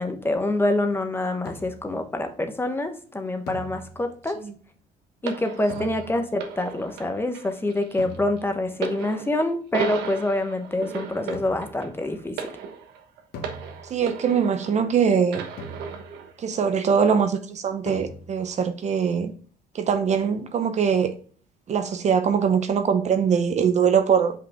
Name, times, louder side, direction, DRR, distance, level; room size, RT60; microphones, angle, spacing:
voice 1, 0.0-4.4 5.2-12.4, left 1 dB, 15° left, 1.0 m, -26 dB
sound 1, 1.5-2.0 3.5-4.3 5.7-6.5 8.0-8.7 11.3-11.9 13.3-14.2 15.6-16.4 17.9-18.6, left 1 dB, 75° left, 1.5 m, -41 dB
sound 2, 5.3-14.9 15.3-16.3 17.1-17.3, right 6 dB, 85° right, 1.2 m, -35 dB
voice 2, 13.9-15.5 16.4-19.3 19.7-21.1 21.7-24.3, right 7 dB, 40° right, 0.8 m, -22 dB
5.7 x 5.1 x 3.5 m
cardioid pair, 110°, 17 cm